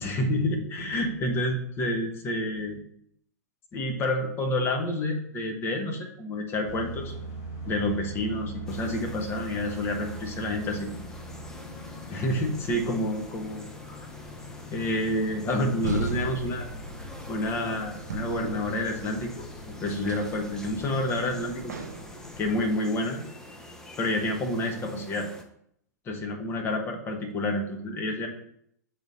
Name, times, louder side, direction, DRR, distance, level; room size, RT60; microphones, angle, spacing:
voice 1, 0.0-2.8 3.7-7.1 7.6-10.9 12.1-14.0 14.7-16.7 17.3-21.9 22.4-23.2 24.0-25.3 26.1-28.3, left 1 dB, 25° left, 3 dB, 1.1 m, -29 dB
sound 1, 6.6-22.7, equal, 45° left, 1.9 m, -42 dB
sound 2, 8.7-25.4, left 1 dB, 5° left, 0.7 m, -47 dB
sound 3, 15.8-17.5 18.1-19.3 20.0-20.4 21.7-22.2, right 5 dB, 70° right, 0.5 m, -35 dB
6.9 x 4.1 x 3.9 m, 0.69 s
figure-of-eight pair, 100°, 9 cm